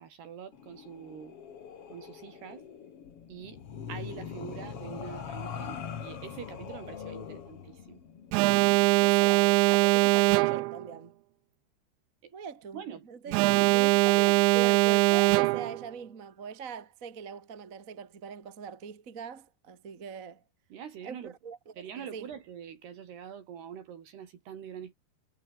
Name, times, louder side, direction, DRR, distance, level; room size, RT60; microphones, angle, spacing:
voice 1, 0.0-1.4 1.9-2.6 3.3-3.6 3.9-8.0 12.2-12.3 12.7-14.3 20.7-21.4 21.8-25.0, right 8 dB, 65° right, 4.5 m, -44 dB
sound 1, 0.5-9.5, left 7 dB, 45° left, 2.2 m, -43 dB
Alarm, 8.3-10.9 13.3-15.9, right 25 dB, 85° right, 2.8 m, -22 dB
voice 2, 9.0-11.2 12.3-13.3 14.0-20.4 21.0-22.3, right 6 dB, 40° right, 1.1 m, -42 dB
omnidirectional pair, 5.1 m